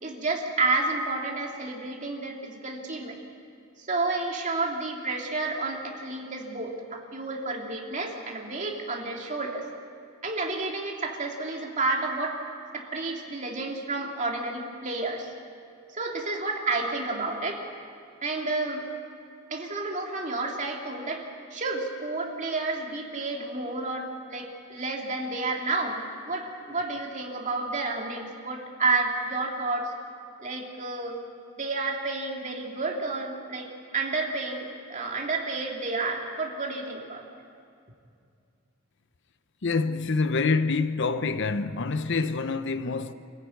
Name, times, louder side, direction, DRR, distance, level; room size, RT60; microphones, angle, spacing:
voice 1, 0.0-3.2 3.8-9.6 10.2-12.4 12.7-15.3 15.9-17.6 18.2-18.8 19.5-21.2 21.5-29.9 30.4-31.2 31.6-33.7 33.9-37.3, right 3 dB, 35° right, 2.7 m, -30 dB
voice 2, 39.6-43.1, left 4 dB, 60° left, 0.7 m, -26 dB
27.0 x 14.5 x 9.4 m
head